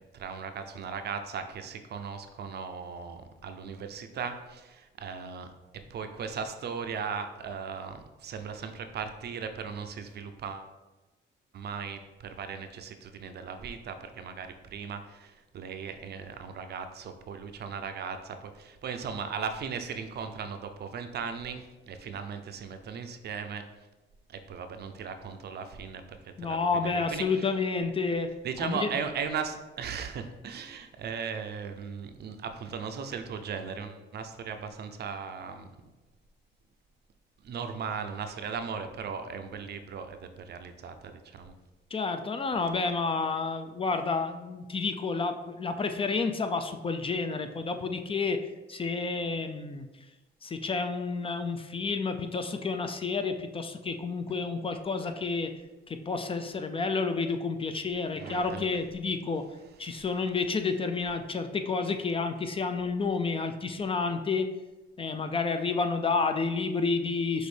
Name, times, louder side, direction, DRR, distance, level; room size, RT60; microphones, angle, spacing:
voice 1, 0.1-5.5 5.9-10.7 11.5-23.6 24.3-27.5 28.4-35.7 37.4-41.5 58.1-58.8 59.9-60.0, right 6 dB, 55° right, 7 dB, 0.5 m, -37 dB
voice 2, 26.4-28.3 28.6-28.9 41.9-49.9 50.4-55.5 55.9-59.5 59.8-64.5 65.0-67.5, left 4 dB, 30° left, 7 dB, 0.4 m, -30 dB
6.1 x 2.6 x 3.3 m, 1.1 s
cardioid pair, 90°, 20 cm